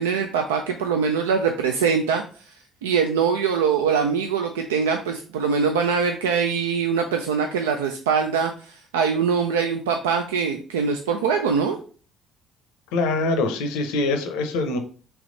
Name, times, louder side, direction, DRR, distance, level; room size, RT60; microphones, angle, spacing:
voice 1, 0.0-2.2 2.8-11.8, right 6 dB, 90° right, 4 dB, 0.3 m, -23 dB
voice 2, 12.9-14.8, left 3 dB, 80° left, 7 dB, 0.6 m, -24 dB
3.4 x 3.0 x 3.8 m, 0.40 s
hypercardioid pair, 55°, 0 cm